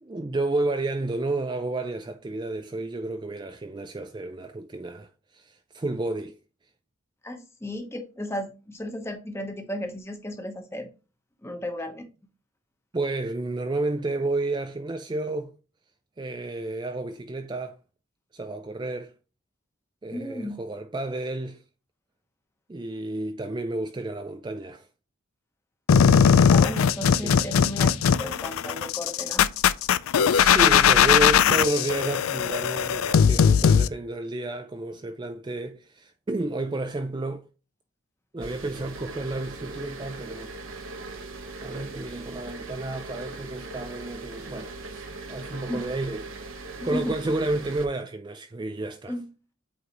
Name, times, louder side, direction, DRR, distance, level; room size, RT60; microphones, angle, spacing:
voice 1, 0.0-6.3 12.9-15.5 16.2-17.8 18.3-19.1 20.0-21.6 22.7-24.9 27.1-27.4 27.7-27.8 29.2-29.3 30.2-37.4 38.3-40.5 41.6-45.0 45.3-46.3 46.8-49.2, right 2 dB, 20° right, 0.4 m, -31 dB
voice 2, 7.2-10.9 11.4-12.0 20.1-20.6 26.5-29.5 45.7-45.8 46.8-47.3 49.1-49.3, left 1 dB, 15° left, 0.9 m, -34 dB
sound 1, 25.9-33.9, left 7 dB, 90° left, 0.4 m, -19 dB
sound 2, 38.4-47.9, right 3 dB, 75° right, 1.1 m, -39 dB
8.1 x 3.9 x 2.9 m
head